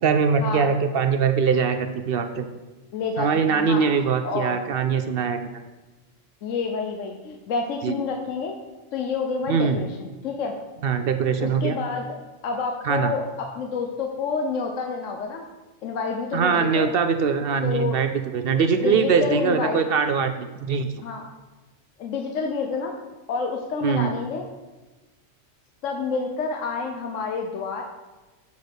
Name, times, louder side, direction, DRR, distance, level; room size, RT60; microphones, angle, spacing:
voice 1, 0.0-2.4 3.2-5.6 7.8-7.9 9.5-9.8 10.8-11.7 12.8-13.1 16.3-20.9 23.8-24.1, right 6 dB, 60° right, 8 dB, 0.6 m, -22 dB
voice 2, 2.9-4.6 6.4-8.6 8.9-10.5 11.4-12.1 12.4-15.5 15.8-16.9 17.6-18.0 18.7-19.8 21.0-21.3 22.0-23.0 23.3-24.5 25.8-27.8, left 4 dB, 75° left, 3 dB, 1.1 m, -29 dB
7.2 x 4.0 x 6.4 m, 1.2 s
omnidirectional pair, 1.4 m